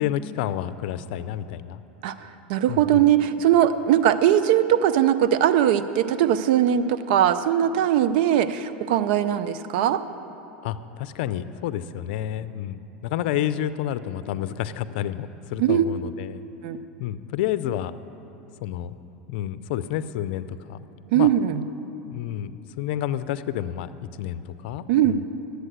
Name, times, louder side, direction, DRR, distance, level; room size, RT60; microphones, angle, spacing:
voice 1, 0.0-1.8 2.7-3.1 10.6-16.4 17.0-17.9 18.6-18.9 19.3-20.8 21.1-21.3 22.1-25.3, left 11 dB, 70° left, 14 dB, 0.5 m, -30 dB
voice 2, 2.0-10.0 15.6-15.9 16.6-16.8 21.1-21.6 24.9-25.3, right 10 dB, 70° right, 12 dB, 0.6 m, -20 dB
11.0 x 8.1 x 8.1 m, 2.9 s
hypercardioid pair, 105°, 6 cm